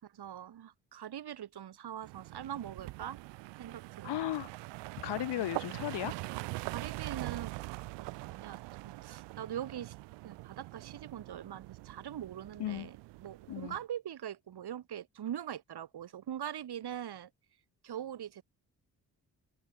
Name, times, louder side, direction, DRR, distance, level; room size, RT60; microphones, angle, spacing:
voice 1, 0.0-3.2 3.6-4.3 6.7-7.6 8.0-9.9 10.2-17.3 17.8-18.4, right 10 dB, 65° right, 7.4 m, -42 dB
sound 1, 2.0-13.8, right 21 dB, 80° right, 2.2 m, -43 dB
voice 2, 4.0-4.5 5.0-6.1 12.6-12.9 13.5-13.7, left 13 dB, 70° left, 4.4 m, -35 dB
open air
hypercardioid pair, 45°, 42 cm